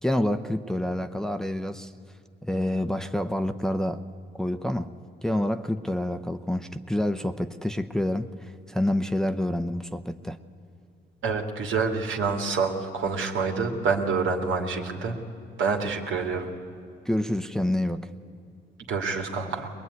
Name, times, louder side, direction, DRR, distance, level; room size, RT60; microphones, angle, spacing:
voice 1, 0.0-1.9 2.4-4.0 4.4-4.9 5.2-10.4 17.0-18.1, left 1 dB, 5° left, 6 dB, 0.8 m, -28 dB
voice 2, 11.2-15.2 15.6-16.5 18.9-19.7, right 4 dB, 80° right, 3 dB, 2.5 m, -27 dB
21.5 x 21.5 x 9.6 m, 2.5 s
cardioid pair, 90°, 20 cm